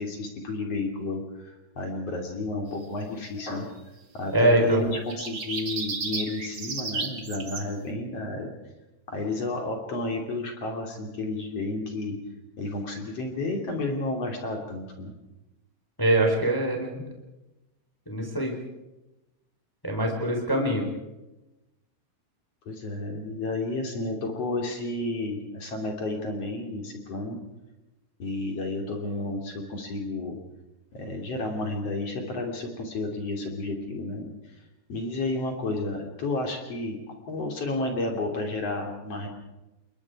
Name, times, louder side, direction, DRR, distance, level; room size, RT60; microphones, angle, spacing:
voice 1, 0.0-3.7 4.1-8.5 9.1-12.2 12.6-15.1 22.6-27.4 28.2-30.4 30.9-34.3 34.9-37.0 37.3-39.3, left 2 dB, 35° left, 2 dB, 3.2 m, -31 dB
voice 2, 4.3-4.8 16.0-17.0 18.1-18.5 19.8-20.8, right 1 dB, 5° left, 1 dB, 3.0 m, -23 dB
sound 1, 5.1-7.6, right 4 dB, 65° right, 1.0 m, -33 dB
29.0 x 22.5 x 4.8 m, 1.0 s
omnidirectional pair, 5.6 m